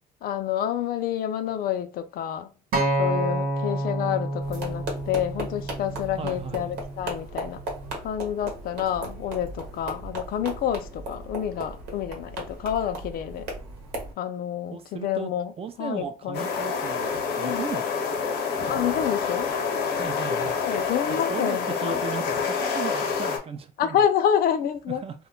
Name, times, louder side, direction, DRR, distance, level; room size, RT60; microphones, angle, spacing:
voice 1, 0.2-2.5 3.0-7.6 8.0-13.5 14.2-15.5 15.8-16.5 17.4-17.6 18.7-19.5 20.6-21.9 23.8-25.0, left 9 dB, 60° left, 0.4 m, -28 dB
Acoustic guitar, 2.7-7.0 7.8-7.9, right 1 dB, 60° right, 0.9 m, -29 dB
sound 1, 4.4-14.1, right 2 dB, 85° right, 1.0 m, -37 dB
voice 2, 6.2-6.7 14.7-15.3 15.6-17.1 17.4-18.1 20.0-20.6 21.3-24.0 24.9-25.1, right 6 dB, 35° right, 0.4 m, -36 dB
sound 2, 16.3-23.4, left 5 dB, 80° left, 0.8 m, -27 dB
2.2 x 2.1 x 3.7 m
cardioid pair, 110°, 17 cm